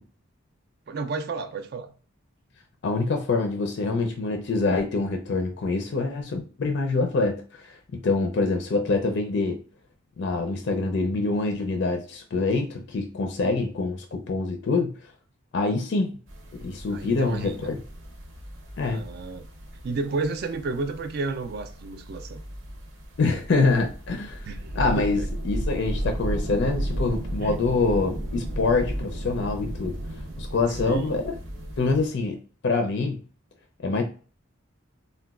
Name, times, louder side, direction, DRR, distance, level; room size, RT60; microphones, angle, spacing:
voice 1, 0.9-1.9 16.9-17.7 18.8-19.5 19.8-22.4 24.4-25.3 27.4-27.5 30.8-31.2, right 3 dB, 50° right, 0.3 m, -32 dB
voice 2, 2.8-7.7 7.9-9.6 10.2-14.9 15.5-16.1 16.6-17.8 18.8-19.1 23.2-24.4 24.7-30.0 30.4-31.2 31.8-33.2 33.8-34.0, left 3 dB, 55° left, 0.4 m, -25 dB
sound 1, 16.3-32.1, right 1 dB, 65° right, 0.7 m, -34 dB
3.9 x 2.2 x 2.3 m
head